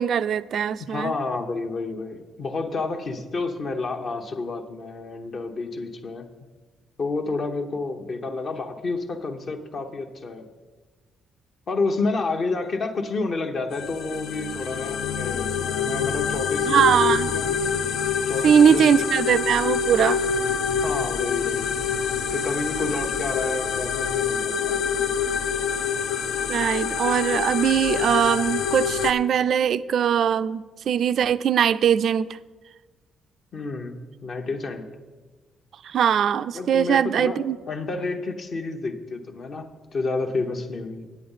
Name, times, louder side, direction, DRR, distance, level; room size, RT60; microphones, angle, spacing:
voice 1, 0.0-1.1 16.7-17.3 18.4-20.2 26.5-32.4 35.8-37.6, right 8 dB, 65° right, 15 dB, 0.3 m, -21 dB
voice 2, 0.8-6.3 7.0-10.5 11.7-17.6 18.3-18.9 20.8-21.7 22.3-24.8 33.5-34.9 36.5-37.4 37.7-41.1, left 3 dB, 50° left, 4 dB, 0.9 m, -30 dB
sound 1, 13.7-29.1, left 7 dB, 80° left, 0.5 m, -26 dB
8.6 x 8.0 x 5.5 m, 1.3 s
cardioid pair, 90°, 0 cm